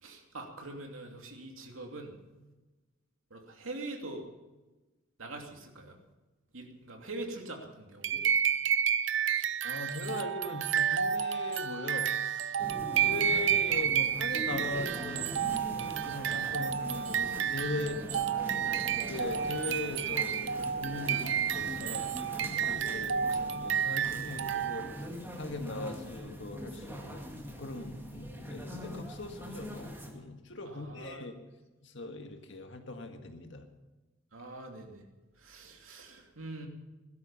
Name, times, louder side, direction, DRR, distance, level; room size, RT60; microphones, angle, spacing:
voice 1, 0.0-2.1 3.3-4.2 5.2-6.0 6.5-8.3 30.6-31.3 34.3-35.0 35.4-36.7, right 2 dB, 85° right, 2 dB, 2.7 m, -43 dB
sound 1, 8.0-25.1, right 8 dB, 65° right, 0.6 m, -31 dB
voice 2, 9.6-12.6 12.9-15.7 16.0-18.0 19.1-24.9 25.4-27.3 27.6-31.4 31.8-33.6, left 2 dB, 60° left, 4 dB, 1.9 m, -40 dB
sound 2, 12.6-30.1, equal, 10° right, 2.1 m, -43 dB
16.5 x 13.0 x 5.6 m, 1.1 s
head